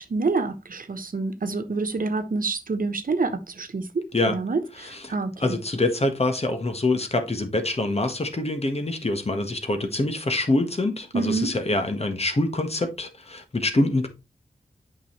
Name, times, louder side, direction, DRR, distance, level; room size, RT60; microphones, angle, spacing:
voice 1, 0.0-5.6 11.1-11.5, right 3 dB, 65° right, 1.1 m, -27 dB
voice 2, 4.8-5.1 5.4-14.1, left 2 dB, 45° left, 1.5 m, -25 dB
8.3 x 5.5 x 3.2 m
cardioid pair, 50°, 15 cm